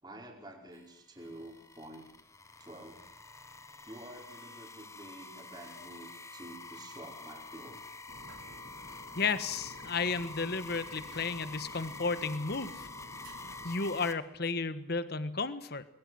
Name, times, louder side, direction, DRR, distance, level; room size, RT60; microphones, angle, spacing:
voice 1, 0.0-2.1 2.6-3.0 3.8-7.8, right 1 dB, 20° right, 0 dB, 4.9 m, -49 dB
sound 1, 0.7-14.1, left 3 dB, 15° left, 1.3 m, -47 dB
sound 2, 8.1-13.7, right 1 dB, 70° right, 3.7 m, -53 dB
voice 2, 9.1-12.9 13.6-15.8, left 4 dB, 55° left, 13 dB, 1.4 m, -33 dB
22.0 x 22.0 x 7.8 m, 0.68 s
head